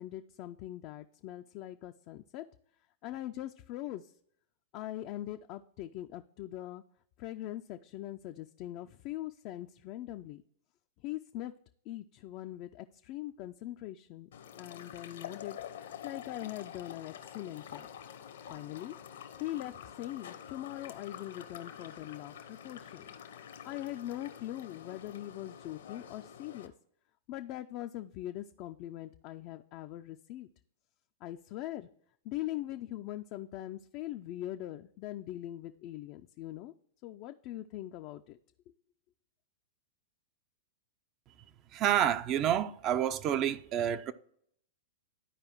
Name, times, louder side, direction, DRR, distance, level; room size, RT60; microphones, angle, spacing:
voice 1, 0.0-2.4 3.0-4.1 4.7-6.8 7.2-10.4 11.0-11.5 11.9-14.3 14.6-15.6 16.0-17.9 18.5-18.9 19.4-23.1 23.6-26.7 27.3-30.5 31.2-31.9 32.2-36.7 37.0-38.4, left 14 dB, 45° left, 0.4 m, -41 dB
sound 1, 14.3-26.7, left 9 dB, 70° left, 0.9 m, -47 dB
voice 2, 41.7-44.1, right 10 dB, 35° right, 0.5 m, -29 dB
12.5 x 4.8 x 3.0 m
hypercardioid pair, 105°, 0 cm